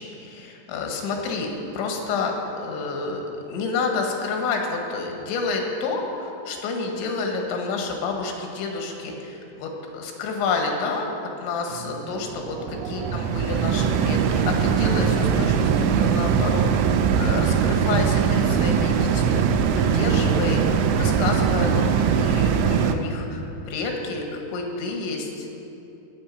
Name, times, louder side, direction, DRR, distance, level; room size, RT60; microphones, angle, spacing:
voice 1, 0.0-25.6, left 4 dB, 90° left, 2 dB, 3.9 m, -29 dB
sound 1, 11.7-23.0, right 7 dB, 90° right, 3.1 m, -21 dB
21.5 x 8.8 x 5.7 m, 2.8 s
omnidirectional pair, 5.2 m